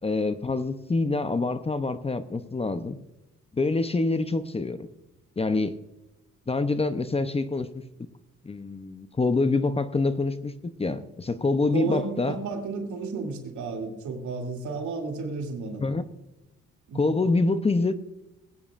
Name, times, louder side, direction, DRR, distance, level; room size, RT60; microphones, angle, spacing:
voice 1, 0.0-3.0 3.5-4.9 5.4-5.8 6.5-7.7 8.4-10.5 10.8-12.4 15.8-16.0 16.9-17.9, left 3 dB, 20° left, 11 dB, 0.7 m, -26 dB
voice 2, 11.7-15.8 16.9-17.1, right 4 dB, 75° right, 1 dB, 2.8 m, -32 dB
21.0 x 9.4 x 2.5 m, 0.93 s
cardioid pair, 90°, 30 cm